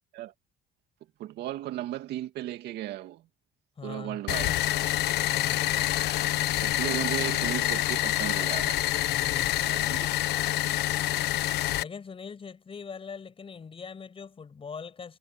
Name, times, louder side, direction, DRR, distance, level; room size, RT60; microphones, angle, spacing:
voice 1, 1.2-3.2 3.8-4.6 6.6-8.8 9.6-10.1, right 13 dB, 75° right, 2.3 m, -35 dB
voice 2, 3.8-4.2 5.3-5.7 9.1-9.6 11.8-15.2, left 5 dB, 35° left, 6.1 m, -41 dB
sound 1, 4.3-11.8, left 15 dB, 80° left, 1.1 m, -27 dB
cardioid pair, 110°, 17 cm